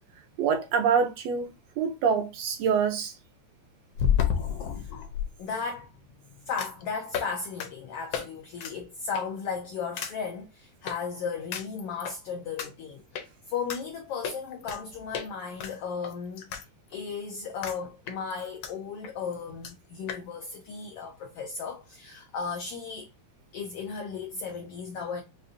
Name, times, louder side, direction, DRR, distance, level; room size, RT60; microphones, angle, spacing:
voice 1, 0.4-1.5 1.8-3.1, right 6 dB, 75° right, 1.6 m, -25 dB
sound 1, 1.5-1.6 4.0-5.3 6.6-6.8 7.1-7.3 7.6-7.7 8.1-8.3 8.6-8.7 9.1-9.4 10.0-10.1 10.9-11.0 11.5-12.2 12.6-12.7 13.1-13.3 13.7-13.8 14.2-14.8 15.1-15.3 15.6-16.6 16.9-17.0 17.6-17.8 18.1-18.7 19.0-19.1 19.3-19.4 19.6-19.7 20.1-20.2, left 9 dB, 70° left, 1.5 m, -30 dB
voice 2, 5.4-6.0 6.5-16.5 16.9-23.1 23.5-25.2, left 5 dB, 90° left, 1.3 m, -35 dB
6.7 x 2.4 x 2.5 m
omnidirectional pair, 3.4 m